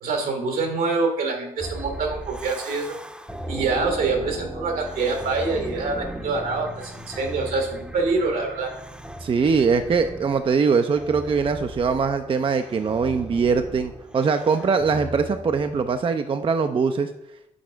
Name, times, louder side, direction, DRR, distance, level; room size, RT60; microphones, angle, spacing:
voice 1, 0.0-3.0 3.5-8.7, right 3 dB, 75° right, 3 dB, 1.5 m, -25 dB
sound 1, 1.6-16.1, right 1 dB, 5° right, 0.7 m, -37 dB
voice 2, 9.2-17.1, right 5 dB, 35° right, 8 dB, 0.4 m, -22 dB
6.3 x 4.2 x 4.5 m, 0.81 s
supercardioid pair, 55°, 15 cm